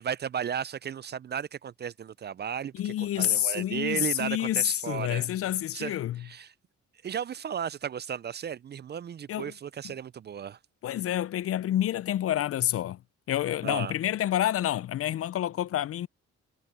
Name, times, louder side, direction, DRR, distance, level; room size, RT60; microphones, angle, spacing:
voice 1, 0.0-5.3 5.7-6.5 7.0-10.6 13.6-13.9, right 8 dB, 35° right, 0.4 m, -35 dB
voice 2, 2.8-6.2 9.3-9.5 9.8-9.9 10.8-13.0 13.3-16.1, left 12 dB, 50° left, 0.4 m, -28 dB
cardioid pair, 90°, 30 cm